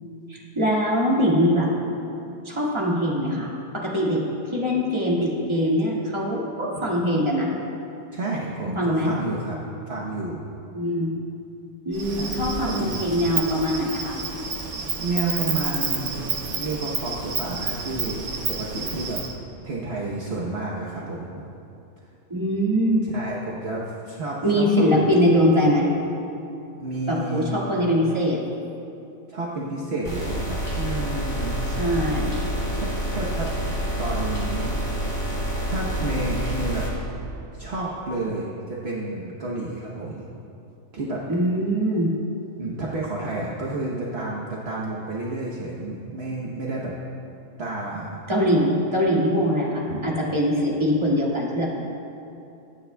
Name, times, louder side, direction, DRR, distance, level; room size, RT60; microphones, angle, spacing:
voice 1, 0.3-1.7 2.4-3.5 3.8-4.2 4.5-7.5 8.8-9.1 10.7-11.1 11.9-14.1 22.3-23.0 24.4-25.9 27.1-28.4 31.8-32.4 41.3-42.1 48.3-51.6, equal, 20° right, -5 dB, 1.9 m, -22 dB
voice 2, 8.1-9.6 9.9-10.5 12.2-12.3 12.6-12.9 15.0-19.2 19.6-21.5 23.0-25.0 26.8-27.7 29.3-31.6 32.1-32.3 32.7-33.5 34.0-34.7 35.7-36.8 37.5-40.2 40.9-41.2 42.6-46.9 47.6-48.1 49.9-50.0, right 2 dB, 55° right, -4 dB, 1.2 m, -30 dB
Insect, 11.9-19.3, right 4 dB, 75° right, 1.3 m, -30 dB
sound 1, 30.0-36.9, equal, 45° left, 3.2 m, -27 dB
22.0 x 9.5 x 2.3 m, 2.7 s
omnidirectional pair, 1.3 m